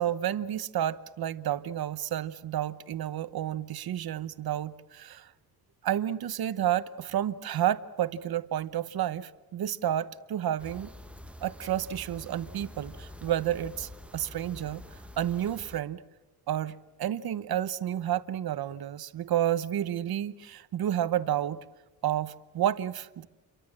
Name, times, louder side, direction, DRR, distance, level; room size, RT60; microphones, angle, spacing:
voice 1, 0.0-5.3 5.8-10.9 11.4-14.8 15.2-16.0 16.5-21.6 22.0-23.3, right 11 dB, 75° right, 1.0 m, -30 dB
sound 1, 10.6-15.8, left 1 dB, 5° right, 1.0 m, -46 dB
29.0 x 23.5 x 7.5 m
wide cardioid pair, 160°, 37 cm